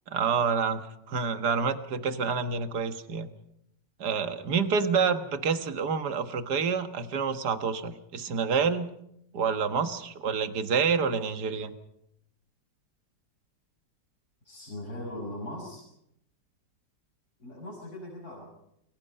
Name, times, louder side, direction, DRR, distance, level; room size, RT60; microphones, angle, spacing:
voice 1, 0.1-3.3 4.0-8.9 9.3-11.7, right 5 dB, 70° right, 9 dB, 1.9 m, -28 dB
voice 2, 14.4-15.8 17.4-18.5, left 1 dB, 60° left, -3 dB, 6.7 m, -39 dB
29.0 x 21.5 x 5.5 m, 0.78 s
omnidirectional pair, 1.9 m